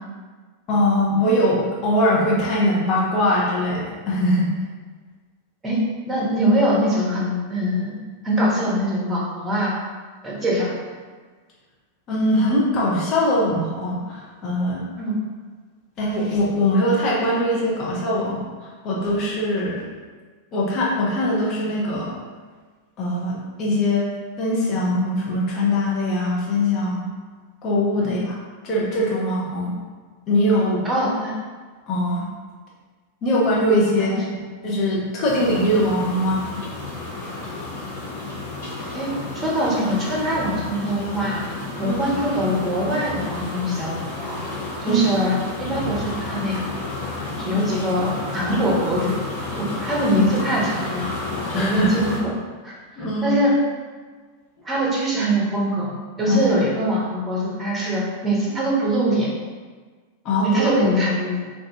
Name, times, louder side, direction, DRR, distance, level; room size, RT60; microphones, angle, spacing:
voice 1, 0.7-4.5 12.1-14.9 16.0-19.9 20.5-22.2 23.0-24.1 24.4-27.0 27.6-28.3 28.6-29.7 30.3-30.9 31.9-32.3 33.2-34.2 34.6-36.4 41.8-42.2 44.9-45.1 51.5-52.1 53.0-53.4 56.3-56.4 60.2-60.9, left 1 dB, 35° left, -5 dB, 1.0 m, -21 dB
voice 2, 5.6-8.0 8.2-9.7 10.2-10.7 15.0-15.2 23.8-23.9 28.0-28.2 30.8-31.3 34.1-34.2 38.9-41.4 41.8-44.4 44.8-46.8 47.4-49.2 49.6-51.0 51.5-52.3 52.6-53.6 54.6-55.9 56.2-59.3 60.4-61.5, equal, 15° right, -5 dB, 1.0 m, -23 dB
sound 1, 35.2-52.2, left 2 dB, 60° left, 1.0 m, -31 dB
2.6 x 2.6 x 3.5 m, 1.5 s
figure-of-eight pair, 90°, 0 cm